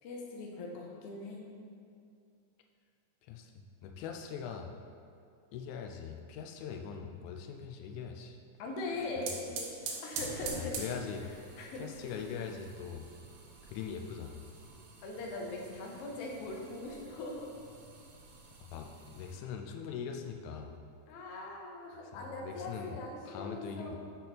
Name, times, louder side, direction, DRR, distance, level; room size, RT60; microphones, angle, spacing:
voice 1, 0.0-1.5 8.6-10.8 11.3-11.8 15.0-17.5 21.1-24.0, left 2 dB, 65° left, -1 dB, 1.6 m, -41 dB
voice 2, 3.3-4.7 5.5-8.4 9.2-9.3 10.6-11.2 11.8-13.1 13.6-14.4 18.7-20.7 22.1-23.0 23.3-24.0, left 7 dB, 85° left, 3 dB, 2.0 m, -41 dB
sound 1, 8.8-19.4, right 4 dB, 85° right, 2.2 m, -46 dB
8.4 x 4.1 x 4.1 m, 2.4 s
omnidirectional pair, 3.4 m